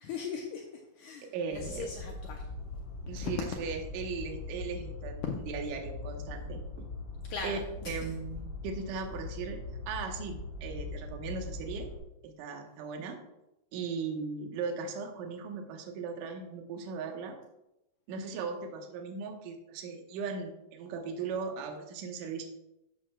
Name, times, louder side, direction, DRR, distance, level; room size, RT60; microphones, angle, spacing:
voice 1, 0.0-2.5 3.2-3.5 5.2-5.3 7.3-8.1, left 6 dB, 80° left, 2 dB, 1.8 m, -39 dB
voice 2, 1.2-1.9 3.1-6.9 7.4-7.6 7.9-9.6 9.9-11.9 12.2-13.2 13.7-17.4 18.1-22.4, right 5 dB, 70° right, 3 dB, 2.5 m, -38 dB
sound 1, 1.5-12.0, left 2 dB, 40° left, 3.9 m, -41 dB
12.5 x 7.5 x 2.2 m, 0.88 s
omnidirectional pair, 4.2 m